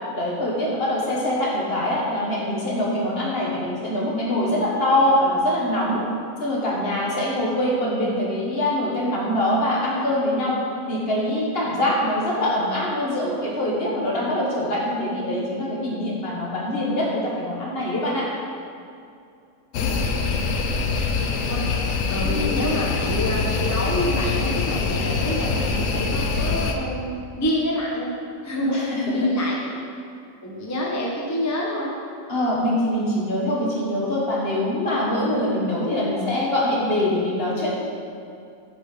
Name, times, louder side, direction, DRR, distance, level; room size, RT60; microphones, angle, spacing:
voice 1, 0.1-6.0 6.4-10.6 10.9-18.3 22.2-22.7 28.7-29.5 32.3-37.7, left 1 dB, 45° left, -4 dB, 1.6 m, -24 dB
sound 1, 19.7-26.8, left 4 dB, 70° left, 1.0 m, -24 dB
voice 2, 21.2-21.6 22.1-28.1 28.4-28.8 29.1-29.6 30.4-31.9, left 1 dB, 15° left, -3 dB, 0.7 m, -27 dB
8.3 x 5.5 x 4.9 m, 2.4 s
omnidirectional pair, 1.5 m